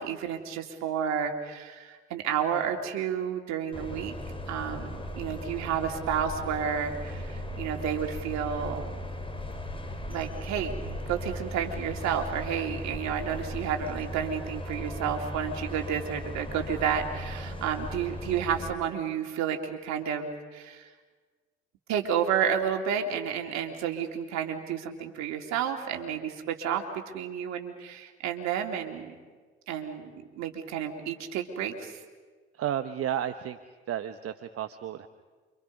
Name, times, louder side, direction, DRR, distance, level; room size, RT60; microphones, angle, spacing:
voice 1, 0.0-4.1 4.5-9.0 10.1-10.7 11.1-20.9 21.9-29.1 29.7-32.0, right 8 dB, 65° right, 3 dB, 3.0 m, -31 dB
sound 1, 3.7-18.7, equal, 20° left, 4.4 m, -37 dB
voice 2, 32.5-33.6 33.9-35.1, right 10 dB, 50° right, 9 dB, 1.1 m, -32 dB
29.0 x 25.5 x 5.4 m, 1.4 s
hypercardioid pair, 55°, 30 cm